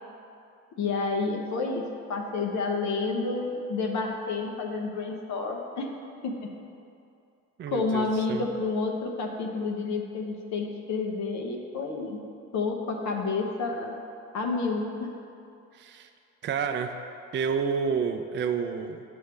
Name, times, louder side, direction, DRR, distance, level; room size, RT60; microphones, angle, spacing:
voice 1, 0.8-5.9 6.2-6.5 7.7-12.2 12.5-14.0 14.3-15.1, left 3 dB, 70° left, 2 dB, 0.8 m, -30 dB
voice 2, 7.6-8.5 15.7-16.1 16.4-16.9 17.3-19.0, right 6 dB, 40° right, 6 dB, 0.4 m, -29 dB
8.7 x 5.3 x 3.4 m, 2.5 s
cardioid pair, 90°, 30 cm